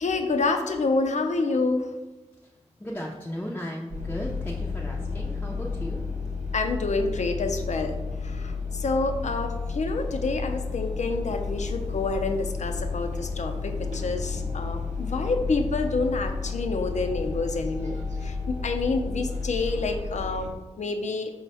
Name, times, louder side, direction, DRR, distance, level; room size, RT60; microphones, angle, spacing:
voice 1, 0.0-1.9 6.5-21.3, left 3 dB, 75° left, 5 dB, 0.4 m, -28 dB
voice 2, 2.8-6.0, equal, 15° left, -3 dB, 0.4 m, -36 dB
sound 1, 3.9-20.5, left 4 dB, 90° right, 0.7 m, -32 dB
4.5 x 2.1 x 4.1 m, 1.2 s
cardioid pair, 45°, 12 cm